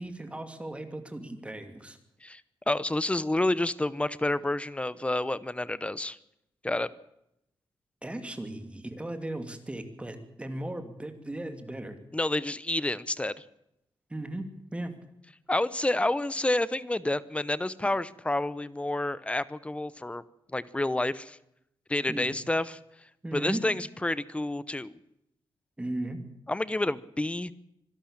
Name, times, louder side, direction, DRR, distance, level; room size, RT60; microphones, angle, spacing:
voice 1, 0.0-2.0 8.0-12.0 14.1-14.9 22.1-22.4 23.2-23.7 25.8-26.2, right 1 dB, 15° right, 8 dB, 2.7 m, -37 dB
voice 2, 2.7-6.2 6.6-6.9 12.1-13.4 15.5-20.2 20.5-21.4 21.9-22.8 23.3-25.0 26.5-27.5, left 2 dB, 15° left, 18 dB, 0.9 m, -29 dB
25.0 x 12.0 x 8.8 m, 0.81 s
wide cardioid pair, 120°, 9 cm